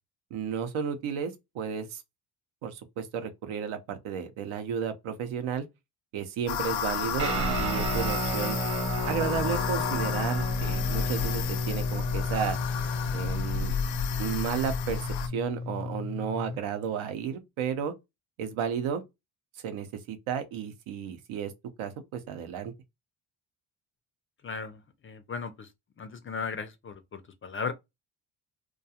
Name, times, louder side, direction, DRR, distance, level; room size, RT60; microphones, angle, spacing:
voice 1, 0.3-2.0 2.6-5.7 6.1-8.6 9.1-12.6 13.1-13.7 14.2-17.9 18.4-19.0 19.6-21.5 21.8-22.7, right 7 dB, 80° right, 0.7 m, -33 dB
sound 1, 6.5-15.3, left 7 dB, 70° left, 0.6 m, -32 dB
Guitar, 7.2-16.6, left 1 dB, 35° right, 0.9 m, -32 dB
voice 2, 24.4-25.7 26.0-27.7, left 5 dB, 30° left, 0.3 m, -36 dB
2.3 x 2.3 x 2.7 m
cardioid pair, 80°, 48 cm